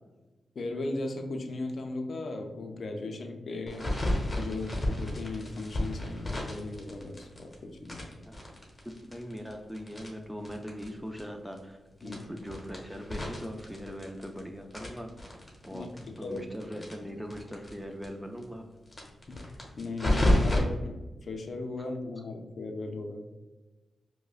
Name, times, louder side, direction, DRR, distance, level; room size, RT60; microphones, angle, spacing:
voice 1, 0.5-3.9 4.4-8.0 12.0-12.2 15.7-15.9 16.2-16.4 19.3-23.3, left 2 dB, 60° left, 4 dB, 0.5 m, -37 dB
sound 1, 3.7-7.5 7.8-10.9 11.2-11.3 11.5-11.6 12.0-14.4 14.7-17.7 18.0-18.1 18.4-18.5 18.9-20.6, left 1 dB, 25° left, 1.0 m, -31 dB
voice 2, 9.0-15.1 15.6-18.6, equal, 5° right, 3 dB, 0.4 m, -40 dB
4.9 x 2.1 x 2.4 m, 1.2 s
cardioid pair, 80°, 0 cm